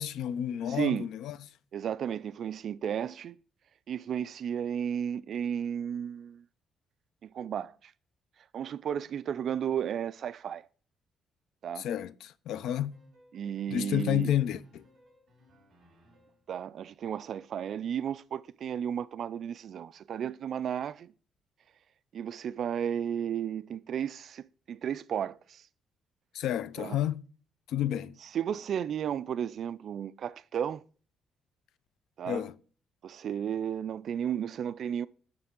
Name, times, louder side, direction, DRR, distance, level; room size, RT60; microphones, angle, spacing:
voice 1, 0.0-1.4 11.8-13.0 13.7-14.8 26.3-27.2 27.7-28.2 32.3-32.5, left 11 dB, 85° left, 0.4 m, -30 dB
voice 2, 0.7-1.1 1.7-3.4 3.9-6.4 7.2-7.9 8.5-10.7 11.6-11.9 13.3-14.3 16.5-21.1 22.1-25.7 26.8-27.0 28.2-30.8 32.2-32.4 33.0-35.1, right 9 dB, 55° right, 0.3 m, -33 dB
sound 1, 12.9-16.5, left 1 dB, 35° right, 4.7 m, -62 dB
9.5 x 6.7 x 3.7 m
cardioid pair, 135°, 0 cm